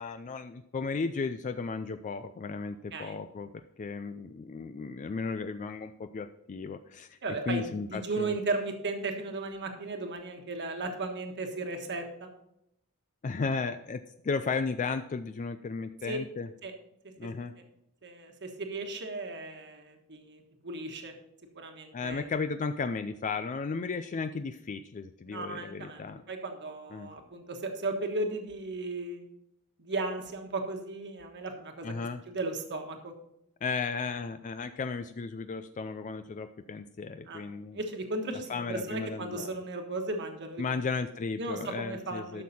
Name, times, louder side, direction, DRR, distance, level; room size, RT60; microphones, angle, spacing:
voice 1, 0.0-7.2 7.5-8.3 13.2-16.5 17.2-17.5 21.9-26.2 26.9-27.1 31.8-32.2 33.6-37.8 38.5-39.5 40.6-42.4, left 4 dB, 35° left, 10 dB, 0.4 m, -35 dB
voice 2, 7.2-12.3 16.0-16.2 16.6-16.7 18.0-21.1 21.5-22.2 25.3-29.2 29.8-31.9 32.3-33.1 37.3-37.4 37.7-40.9 41.4-42.4, right 2 dB, 55° right, 4 dB, 1.4 m, -35 dB
12.5 x 6.4 x 4.2 m, 0.80 s
head